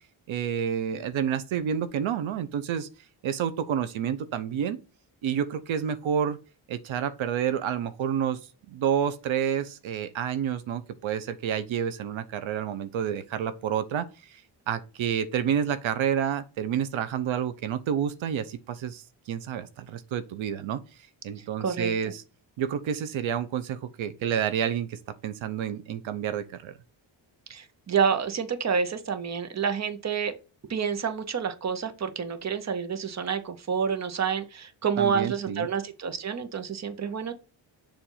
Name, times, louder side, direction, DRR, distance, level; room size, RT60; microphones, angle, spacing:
voice 1, 0.3-2.9 3.2-4.8 5.2-6.4 6.7-8.4 8.7-14.4 14.7-20.8 21.2-22.2 22.6-26.7 35.0-35.7, right 8 dB, 85° right, 0.8 m, -29 dB
voice 2, 21.6-21.9 27.5-30.3 30.7-37.3, right 6 dB, 35° right, 0.8 m, -28 dB
7.2 x 2.6 x 5.5 m
wide cardioid pair, 130°, 46 cm